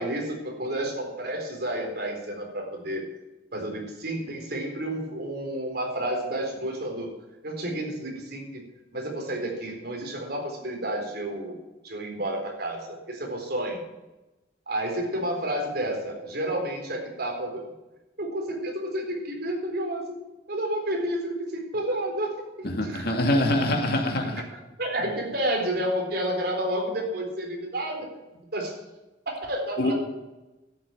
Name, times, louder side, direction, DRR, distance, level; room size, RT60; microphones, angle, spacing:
voice 1, 0.0-3.1 3.5-7.1 7.4-8.6 8.9-11.6 11.8-13.8 14.7-17.6 18.2-20.2 20.5-23.1 24.2-28.1 28.5-28.7 29.3-29.9, right 1 dB, 60° right, 1 dB, 4.0 m, -30 dB
voice 2, 22.6-24.4 29.8-29.9, left 1 dB, 60° left, 3 dB, 2.3 m, -24 dB
12.5 x 7.6 x 9.0 m, 1.0 s
head